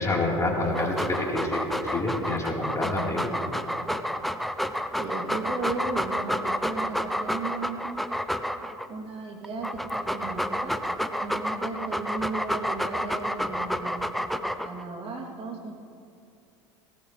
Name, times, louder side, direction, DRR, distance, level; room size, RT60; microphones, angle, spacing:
voice 1, 0.0-3.3, left 2 dB, 20° left, -3 dB, 4.2 m, -27 dB
Dog, 0.6-8.9 9.4-14.8, equal, ahead, 0.7 m, -30 dB
voice 2, 5.0-8.0 8.9-10.8 11.2-14.1 14.6-15.7, right 4 dB, 40° right, -1 dB, 3.1 m, -35 dB
18.5 x 18.0 x 3.4 m, 2.5 s
hypercardioid pair, 85°, 15 cm